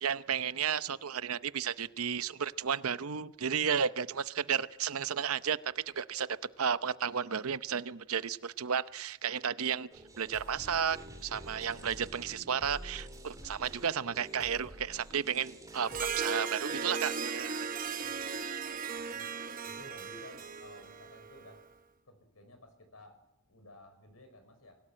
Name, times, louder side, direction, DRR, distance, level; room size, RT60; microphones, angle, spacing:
voice 1, 0.0-6.3 6.6-9.9 10.2-17.7 17.9-18.0, right 7 dB, 75° right, 14 dB, 0.8 m, -33 dB
sound 1, 9.9-16.2, right 1 dB, 15° right, 3.2 m, -48 dB
Harp, 15.8-21.6, right 6 dB, 40° right, 1.0 m, -37 dB
voice 2, 18.9-19.3 19.6-21.6 22.1-23.2 23.5-24.8, left 1 dB, 75° left, 7 dB, 5.6 m, -55 dB
24.5 x 17.0 x 8.9 m, 0.87 s
head